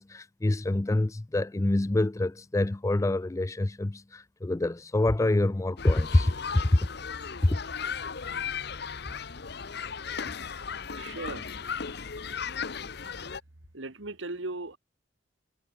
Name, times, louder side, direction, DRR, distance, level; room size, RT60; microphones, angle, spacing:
voice 1, 0.0-6.8 7.4-7.6, left 2 dB, 15° left, 0.4 m, -26 dB
sound 1, 5.8-13.4, left 6 dB, 60° left, 0.9 m, -36 dB
voice 2, 10.9-11.5 13.7-14.8, right 2 dB, 80° right, 2.0 m, -37 dB
head